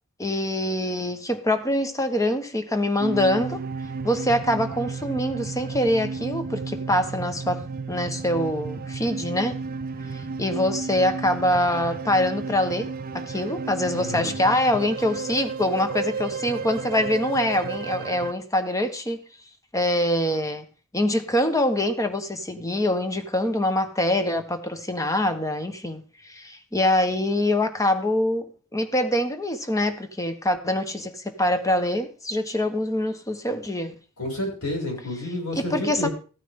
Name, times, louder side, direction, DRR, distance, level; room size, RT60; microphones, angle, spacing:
voice 1, 0.2-3.6 4.0-9.6 10.1-19.2 19.7-20.7 20.9-33.9 35.7-36.1, left 1 dB, 15° left, 1.2 m, -24 dB
sound 1, 3.0-18.3, right 4 dB, 40° right, 0.5 m, -33 dB
voice 2, 13.9-14.4 34.2-36.1, left 1 dB, 85° left, 6.2 m, -30 dB
15.0 x 9.2 x 3.7 m
head